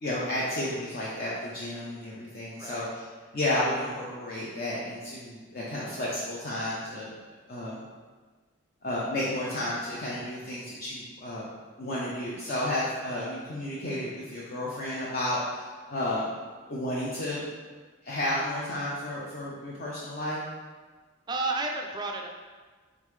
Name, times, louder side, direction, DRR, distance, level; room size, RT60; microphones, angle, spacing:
voice 1, 0.0-3.1 3.3-7.1 7.5-7.8 8.8-11.4 11.8-16.3 16.7-17.4 18.0-20.4, left 1 dB, 50° left, -6 dB, 0.5 m, -32 dB
voice 2, 2.6-3.0 21.3-22.3, right 2 dB, 20° right, 2 dB, 0.3 m, -31 dB
3.7 x 3.6 x 3.1 m, 1.4 s
head